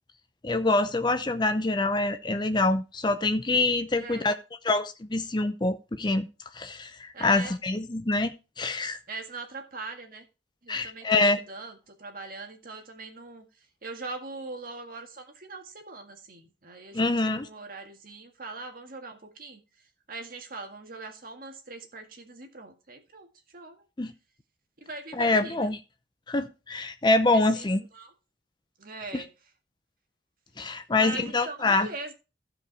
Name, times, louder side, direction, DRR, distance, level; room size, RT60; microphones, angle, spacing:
voice 1, 0.4-4.3 4.6-6.3 6.5-9.0 10.7-11.4 16.9-17.5 24.0-24.1 25.1-25.8 26.3-27.8 29.1-29.2 30.6-31.9, left 2 dB, 25° left, 0.6 m, -25 dB
voice 2, 3.9-4.3 7.1-7.5 9.1-10.3 10.6-13.5 13.8-19.6 20.1-23.3 23.5-23.8 24.8-25.7 27.3-28.1 28.8-29.3 30.9-32.1, right 3 dB, 50° right, 1.9 m, -41 dB
15.0 x 5.1 x 4.7 m
head